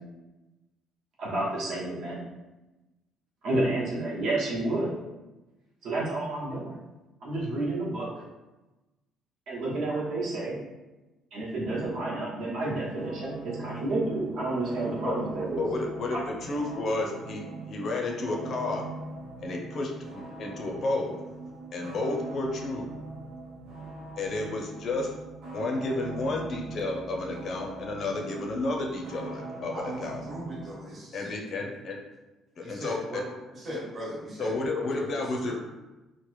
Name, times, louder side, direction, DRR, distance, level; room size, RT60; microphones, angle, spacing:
voice 1, 1.2-2.2 3.4-4.9 5.8-6.8 7.2-8.1 9.5-10.6 11.3-15.7 16.1-16.2, right 2 dB, 60° right, -5 dB, 0.9 m, -30 dB
sound 1, 13.0-30.8, right 3 dB, 90° right, 0.7 m, -41 dB
voice 2, 15.6-18.8 19.4-21.2 21.7-22.9 24.2-25.1 25.5-30.2 31.1-32.0 32.6-33.2 34.4-35.5, left 2 dB, 45° left, 1 dB, 0.5 m, -31 dB
voice 3, 29.7-31.7 32.6-33.2 33.5-35.5, equal, 30° right, -7 dB, 1.0 m, -38 dB
3.0 x 2.1 x 3.1 m, 1.1 s
cardioid pair, 140°, 0 cm